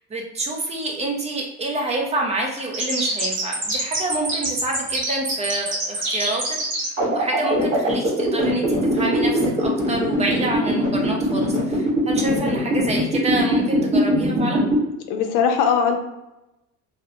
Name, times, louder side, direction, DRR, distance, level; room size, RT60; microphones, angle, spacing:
voice 1, 0.1-14.6, right 2 dB, 20° right, 0 dB, 0.4 m, -27 dB
sound 1, 2.7-14.8, equal, 40° right, 1.1 m, -21 dB
voice 2, 15.1-16.0, left 7 dB, 75° left, 4 dB, 0.5 m, -19 dB
2.7 x 2.0 x 2.6 m, 0.94 s
cardioid pair, 135°, 31 cm